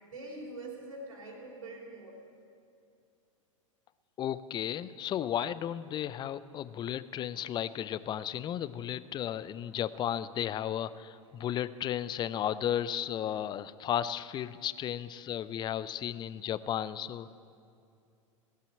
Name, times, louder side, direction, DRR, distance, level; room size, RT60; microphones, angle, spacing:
voice 1, 0.1-2.2, right 2 dB, 75° right, -1 dB, 3.5 m, -44 dB
voice 2, 4.2-17.3, left 10 dB, 25° left, 16 dB, 0.5 m, -34 dB
16.5 x 8.5 x 8.8 m, 2.5 s
figure-of-eight pair, 90°, 17 cm